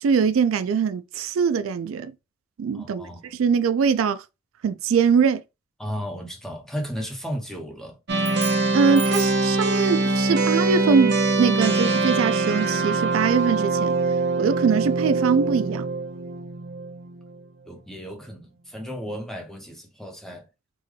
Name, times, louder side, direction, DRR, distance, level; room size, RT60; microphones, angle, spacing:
voice 1, 0.0-2.1 2.6-4.2 4.6-5.4 8.7-13.9 14.4-15.9, right 6 dB, 75° right, 0.3 m, -22 dB
voice 2, 2.7-3.3 5.8-8.0 17.6-20.5, equal, ahead, 0.7 m, -34 dB
sound 1, 8.1-17.4, right 3 dB, 55° right, 0.7 m, -23 dB
sound 2, 8.2-9.5, right 5 dB, 15° right, 1.2 m, -36 dB
3.7 x 2.2 x 3.2 m
head